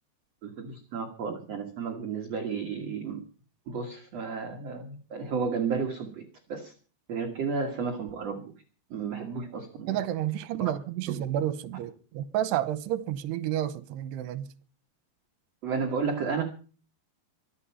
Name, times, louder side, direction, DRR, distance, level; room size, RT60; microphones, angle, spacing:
voice 1, 0.4-3.2 3.7-6.2 6.5-6.7 7.1-8.5 8.9-10.0 10.6-10.7 11.1-11.3 15.6-16.4, right 5 dB, 55° right, 2.0 m, -32 dB
voice 2, 9.9-14.5, right 12 dB, 80° right, 2.9 m, -30 dB
24.0 x 8.3 x 5.7 m
omnidirectional pair, 4.9 m